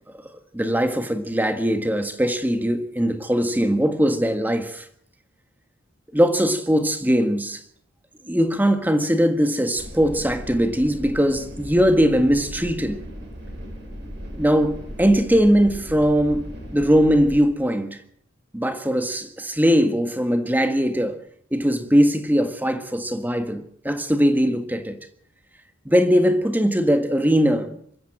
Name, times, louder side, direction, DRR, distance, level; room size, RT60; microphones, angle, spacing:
voice 1, 0.5-4.8 6.1-7.6 8.2-13.0 14.4-16.4 16.7-18.0 18.5-21.2 21.5-25.0 25.8-27.8, equal, 10° right, 1.6 m, -20 dB
sound 1, 9.8-17.4, equal, 55° right, 7.1 m, -37 dB
25.0 x 13.5 x 7.7 m
head